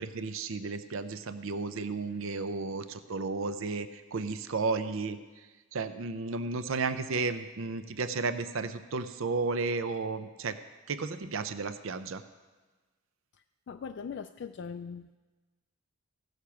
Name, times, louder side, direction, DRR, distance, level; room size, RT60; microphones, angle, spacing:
voice 1, 0.0-10.6 10.9-12.2, right 4 dB, 65° right, 11 dB, 0.6 m, -33 dB
voice 2, 13.7-15.2, left 6 dB, 55° left, 7 dB, 0.3 m, -40 dB
16.0 x 6.6 x 5.8 m, 1.3 s
head